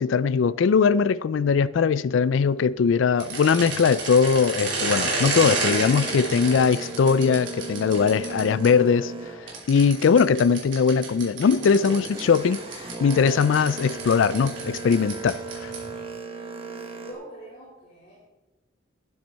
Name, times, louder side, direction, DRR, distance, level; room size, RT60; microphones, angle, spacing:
voice 1, 0.0-9.1 9.7-12.6 13.0-15.7, left 6 dB, 75° left, 0.4 m, -20 dB
sound 1, 3.2-8.7 9.5-16.0, right 3 dB, 70° right, 3.5 m, -31 dB
Boat Water vehicle, 5.4-10.4 10.8-17.1, right 3 dB, 30° right, 1.4 m, -37 dB
voice 2, 16.5-18.3, right 1 dB, 55° left, 4.0 m, -45 dB
11.5 x 9.4 x 4.2 m
head